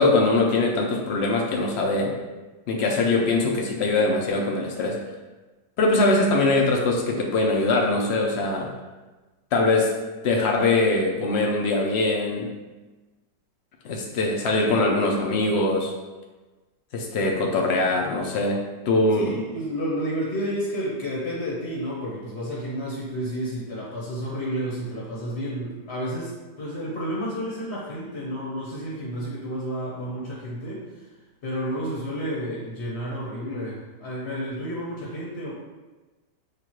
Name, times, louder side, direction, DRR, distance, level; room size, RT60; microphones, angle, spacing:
voice 1, 0.0-2.1 2.7-5.0 5.8-8.7 9.5-9.9 10.2-12.5 13.8-15.9 16.9-19.4, left 2 dB, 70° left, 0 dB, 0.6 m, -22 dB
voice 2, 19.2-26.3 26.6-30.8 31.4-35.5, equal, 45° left, -6 dB, 1.0 m, -31 dB
6.7 x 2.4 x 3.0 m, 1.2 s
omnidirectional pair, 1.8 m